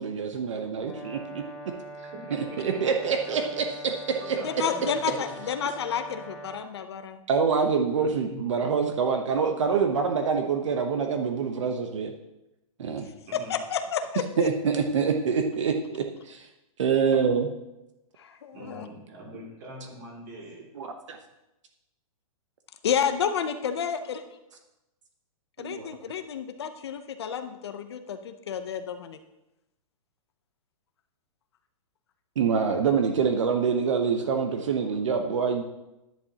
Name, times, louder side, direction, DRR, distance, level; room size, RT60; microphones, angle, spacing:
voice 1, 0.0-1.4 2.3-3.6 4.1-4.4 7.3-12.1 12.8-13.1 14.4-16.5 16.8-17.5 20.7-21.2 25.6-25.9 32.4-35.6, right 6 dB, 55° right, 5 dB, 0.9 m, -26 dB
Brass instrument, 0.8-6.7, right 2 dB, 5° left, 0.4 m, -43 dB
voice 2, 2.2-2.8 4.1-5.3 8.3-8.5 13.3-13.5 18.5-20.6, right 1 dB, 30° right, -2 dB, 2.7 m, -42 dB
voice 3, 4.4-7.2 13.3-14.5 18.2-18.9 22.8-24.2 25.6-29.2, left 7 dB, 45° left, 8 dB, 0.6 m, -30 dB
11.0 x 10.5 x 2.8 m, 0.94 s
hypercardioid pair, 175°, 18 cm